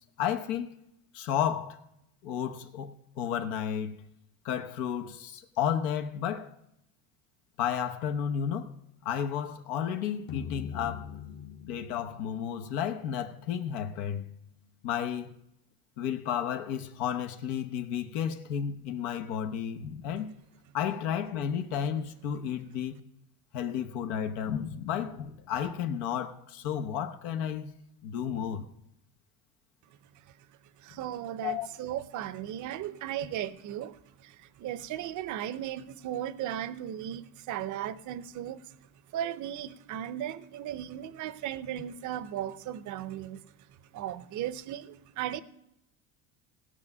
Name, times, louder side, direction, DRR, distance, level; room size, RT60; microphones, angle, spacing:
voice 1, 0.2-0.7 1.1-1.8 2.2-4.0 4.4-6.5 7.6-8.7 9.0-11.1 11.7-14.3 14.8-15.3 16.0-20.3 20.7-23.0 23.5-27.7 28.0-28.7 31.4-31.7, left 8 dB, 75° left, 1.1 m, -32 dB
sound 1, 10.3-14.7, left 8 dB, 30° left, 0.9 m, -44 dB
voice 2, 30.8-38.7 39.1-43.4 43.9-45.4, right 11 dB, 45° right, 0.7 m, -36 dB
18.0 x 6.1 x 5.4 m
supercardioid pair, 115°, 43 cm